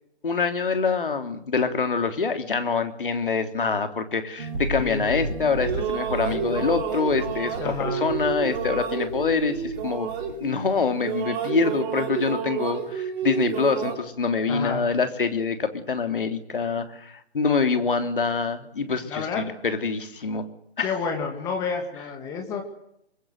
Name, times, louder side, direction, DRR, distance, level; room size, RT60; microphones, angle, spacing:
voice 1, 0.2-10.1 10.4-20.5 20.8-20.9, left 5 dB, 55° left, 7 dB, 3.3 m, -25 dB
sound 1, 4.4-9.8 10.1-10.8, right 1 dB, 50° right, 4.8 m, -34 dB
voice 2, 4.8-5.3 7.6-8.1 14.5-14.9 19.1-19.5 20.8-22.6, left 5 dB, 10° left, 3 dB, 2.1 m, -30 dB
sound 2, 5.3-10.7 11.0-14.0, right 8 dB, 15° right, 2.6 m, -30 dB
25.0 x 22.0 x 8.0 m, 0.76 s
figure-of-eight pair, 150°, 33 cm